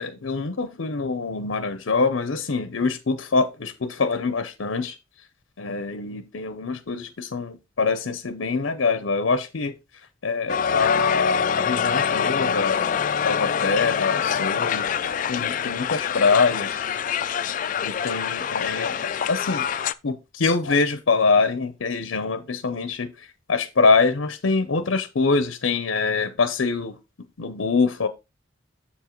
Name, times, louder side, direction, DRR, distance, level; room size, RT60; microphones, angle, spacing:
voice 1, 0.0-4.9 5.6-9.7 10.2-12.8 13.2-14.9 15.3-16.8 17.8-19.7 20.0-23.1 23.5-27.0 27.4-28.1, left 4 dB, 70° left, 0.6 m, -24 dB
Crowd, 10.5-19.9, left 7 dB, 40° left, 0.3 m, -25 dB
7.1 x 7.1 x 3.0 m
head